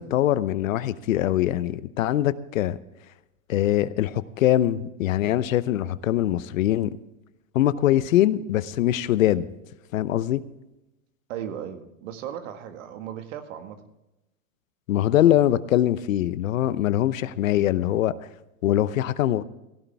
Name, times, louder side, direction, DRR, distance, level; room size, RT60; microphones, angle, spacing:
voice 1, 0.0-2.8 3.5-7.0 7.5-9.5 9.9-10.4 14.9-18.1 18.6-19.4, left 13 dB, 75° left, 16 dB, 0.9 m, -22 dB
voice 2, 11.3-13.8, right 9 dB, 70° right, 8 dB, 1.9 m, -36 dB
16.5 x 14.0 x 3.5 m, 0.94 s
hypercardioid pair, 105°, 40 cm